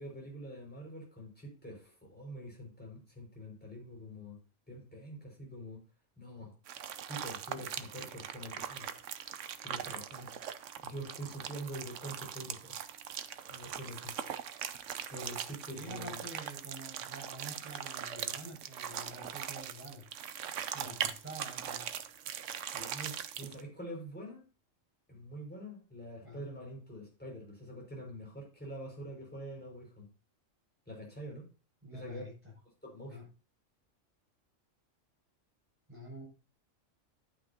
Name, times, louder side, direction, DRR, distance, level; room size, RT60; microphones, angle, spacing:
voice 1, 0.0-4.4 4.7-5.8 6.2-6.5 7.1-8.9 9.6-10.3 10.8-12.8 13.4-14.1 15.1-16.2 20.8-21.0 22.5-24.4 25.1-30.1 30.9-31.5 31.9-32.2 32.8-33.2, equal, 5° left, 5.6 m, -45 dB
sound 1, 6.7-23.6, right 9 dB, 75° right, 1.0 m, -41 dB
voice 2, 15.7-20.0 20.7-22.0 26.2-26.5 31.8-32.3 33.1-33.2 35.9-36.2, right 1 dB, 10° right, 6.5 m, -47 dB
12.5 x 8.6 x 2.9 m
omnidirectional pair, 1.3 m